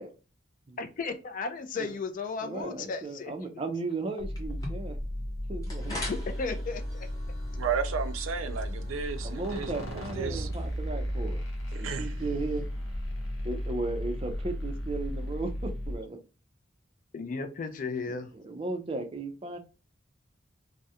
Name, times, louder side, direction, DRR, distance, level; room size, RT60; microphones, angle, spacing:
voice 1, 0.8-3.3 5.9-7.1 17.1-18.3, left 4 dB, 40° left, 0.3 m, -35 dB
voice 2, 2.4-5.0 5.5-5.9 9.2-11.4 11.8-12.7 13.4-16.2 18.1-19.6, right 3 dB, 30° right, 0.4 m, -35 dB
sound 1, 4.2-16.0, equal, 85° left, 0.7 m, -35 dB
sound 2, 4.3-12.2, left 1 dB, 20° left, 0.7 m, -45 dB
voice 3, 7.6-10.5 11.7-12.3, right 6 dB, 85° right, 0.4 m, -34 dB
2.3 x 2.0 x 2.7 m
head